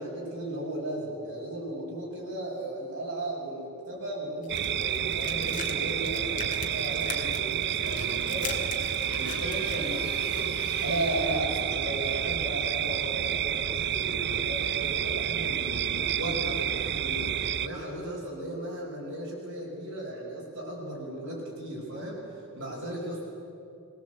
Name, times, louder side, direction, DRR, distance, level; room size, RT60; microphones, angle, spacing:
voice 1, 0.0-8.6 9.1-23.2, right 1 dB, 65° right, -5 dB, 5.3 m, -35 dB
sound 1, 4.4-9.8, left 7 dB, 35° left, 2.1 m, -42 dB
sound 2, 4.5-17.7, right 9 dB, 50° right, 0.6 m, -30 dB
Motorcycle, 6.5-13.2, left 5 dB, 85° left, 2.1 m, -47 dB
21.5 x 19.0 x 8.0 m, 2.7 s
head